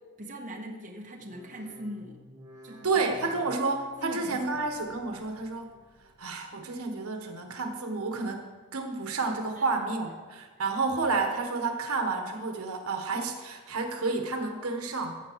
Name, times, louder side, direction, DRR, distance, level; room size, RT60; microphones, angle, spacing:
voice 1, 0.2-2.2 2.6-3.0 3.3-3.4 4.0-4.6 9.6-9.7, equal, 35° right, 0 dB, 1.3 m, -41 dB
sound 1, 1.1-6.4 6.7-7.4 7.8-8.5 8.9-9.6 10.0-10.7 11.1-11.7 12.3-12.4, equal, 15° right, 4.1 m, -56 dB
voice 2, 2.8-5.7 6.2-15.2, right 3 dB, 85° right, 4 dB, 1.3 m, -30 dB
15.5 x 7.0 x 4.7 m, 1.4 s
head